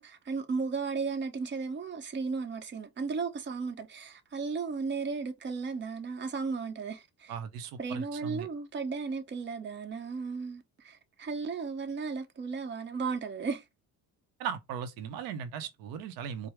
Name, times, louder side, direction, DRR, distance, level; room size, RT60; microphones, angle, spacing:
voice 1, 0.0-7.3 7.8-13.6, right 4 dB, 30° right, 0.8 m, -35 dB
voice 2, 7.3-8.5 14.4-16.5, right 7 dB, 90° right, 0.6 m, -38 dB
4.5 x 2.0 x 3.2 m
cardioid pair, 110°, 35 cm